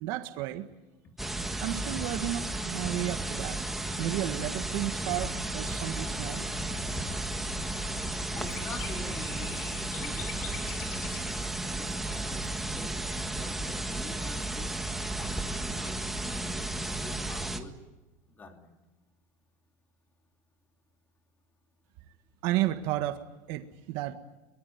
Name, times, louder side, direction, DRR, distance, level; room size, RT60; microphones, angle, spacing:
voice 1, 0.0-0.6 1.6-3.6 4.0-6.5 22.4-24.1, right 14 dB, 50° right, 1.7 m, -32 dB
sound 1, 1.2-17.6, right 2 dB, 5° right, 1.6 m, -34 dB
sound 2, 5.1-11.2, left 5 dB, 75° left, 7.7 m, -44 dB
voice 2, 8.3-9.7 10.0-10.7 11.7-13.0 13.3-16.7 17.0-17.8 18.3-18.7, left 3 dB, 20° left, 3.0 m, -46 dB
23.5 x 23.0 x 9.6 m
supercardioid pair, 160°, 9 cm